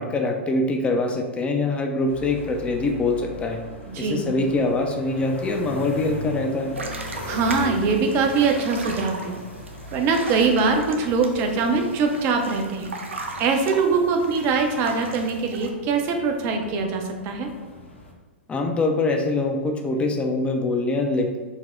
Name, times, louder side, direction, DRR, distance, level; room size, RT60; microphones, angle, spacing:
voice 1, 0.0-3.6 4.0-6.7 18.5-21.4, left 2 dB, 15° left, 2 dB, 0.5 m, -24 dB
sound 1, 2.1-18.1, left 1 dB, 85° left, 0.8 m, -39 dB
voice 2, 3.9-4.3 7.3-9.4 9.9-13.0 13.4-17.5, right 4 dB, 40° right, 4 dB, 0.6 m, -22 dB
sound 2, 6.8-15.7, right 2 dB, 85° right, 0.5 m, -38 dB
4.1 x 2.1 x 3.6 m, 1.3 s
hypercardioid pair, 105°, 7 cm